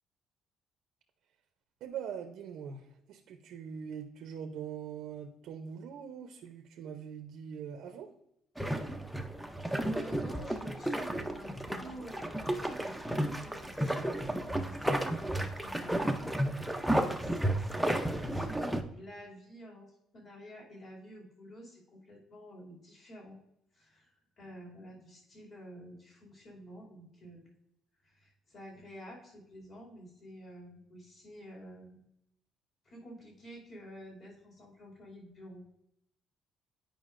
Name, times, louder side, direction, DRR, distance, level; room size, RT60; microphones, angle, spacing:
voice 1, 1.8-8.1, right 7 dB, 70° right, 5 dB, 0.6 m, -42 dB
sound 1, 8.6-18.8, right 1 dB, ahead, 0.5 m, -33 dB
voice 2, 9.8-16.4 16.8-19.9 20.1-23.4 23.7-27.5 28.0-32.0 32.8-35.6, equal, 40° left, -3 dB, 2.6 m, -50 dB
9.2 x 5.2 x 2.5 m, 0.78 s
cardioid pair, 160°, 0 cm